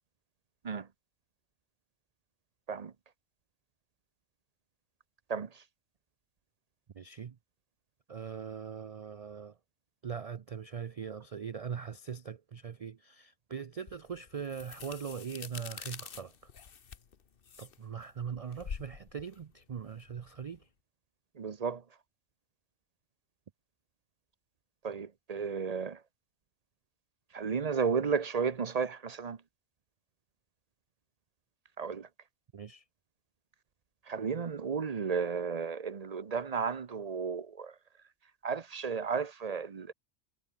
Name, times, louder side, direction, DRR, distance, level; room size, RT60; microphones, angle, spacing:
voice 1, 5.3-5.6 21.4-21.8 24.8-26.0 27.3-29.4 31.8-32.1 34.1-37.7 38.4-39.9, right 5 dB, 35° right, 0.8 m, -33 dB
voice 2, 6.9-7.4 8.1-9.6 10.0-16.5 17.6-20.7 32.5-32.8, right 7 dB, 60° right, 0.3 m, -41 dB
sound 1, 13.9-20.6, left 6 dB, 50° left, 1.2 m, -47 dB
omnidirectional pair, 1.3 m